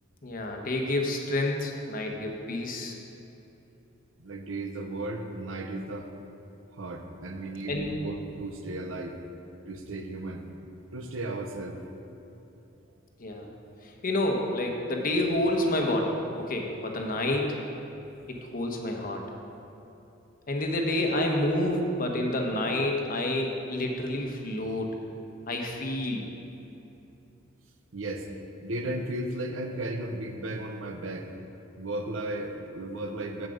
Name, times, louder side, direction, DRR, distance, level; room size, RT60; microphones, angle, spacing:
voice 1, 0.2-3.0 7.7-7.9 13.2-13.5 13.8-17.6 18.3-19.2 20.5-25.0 25.5-26.2, left 1 dB, 45° left, 2 dB, 1.0 m, -29 dB
voice 2, 4.2-6.1 6.7-9.2 9.7-10.5 10.9-11.8 27.9-28.3 28.6-31.3 31.8-33.5, right 1 dB, 75° right, 5 dB, 0.8 m, -35 dB
8.1 x 7.8 x 5.1 m, 3.0 s
head